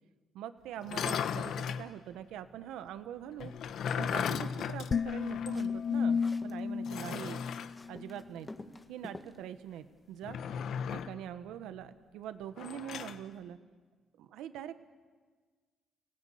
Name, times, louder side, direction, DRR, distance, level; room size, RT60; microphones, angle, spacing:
voice 1, 0.3-3.5 4.0-7.4 7.9-8.5 8.9-10.4 10.9-13.6 14.2-14.8, right 10 dB, 90° right, 11 dB, 1.3 m, -43 dB
sound 1, 0.8-1.9 3.4-5.7 6.0-6.1 6.8-7.7 10.2-11.2 12.6-13.2, left 7 dB, 70° left, 1.1 m, -36 dB
sound 2, 4.9-8.2, left 6 dB, 40° left, 0.7 m, -33 dB
sound 3, 5.1-6.6 6.9-9.4, left 2 dB, 20° left, 1.8 m, -50 dB
30.0 x 18.0 x 8.6 m, 1.5 s
cardioid pair, 90°, 0 cm